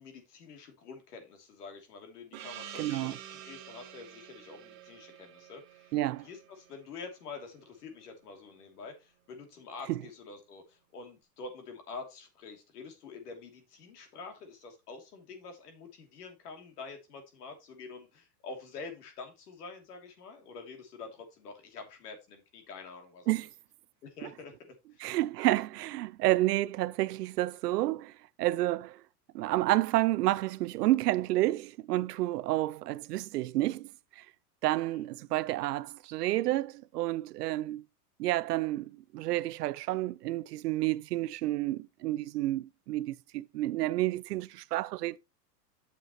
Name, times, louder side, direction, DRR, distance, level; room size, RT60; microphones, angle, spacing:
voice 1, 0.0-5.9 6.2-23.3 24.0-25.1 34.7-35.0, left 4 dB, 70° left, 3.0 m, -47 dB
Gong, 2.3-7.4, right 10 dB, 25° right, 0.9 m, -48 dB
voice 2, 2.8-3.1 5.9-6.3 9.9-10.0 23.3-23.5 24.2-24.3 25.0-28.1 28.4-29.0 29.3-33.9 34.2-34.3 34.6-37.8 38.2-45.2, right 16 dB, 75° right, 0.6 m, -30 dB
9.0 x 6.8 x 3.0 m
supercardioid pair, 170°, 49 cm